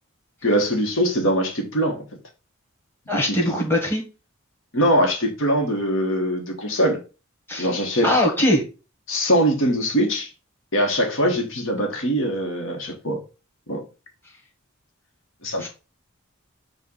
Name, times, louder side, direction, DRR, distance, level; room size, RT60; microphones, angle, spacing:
voice 1, 0.4-2.0 3.2-3.5 4.7-7.0 7.6-8.1 9.1-10.3 10.7-13.2 13.7-13.8 15.4-15.7, equal, 70° left, 1.4 m, -22 dB
voice 2, 3.1-4.0 7.5-7.7 8.0-8.6 15.6-15.7, left 1 dB, 10° left, 1.8 m, -21 dB
7.3 x 2.6 x 5.4 m
head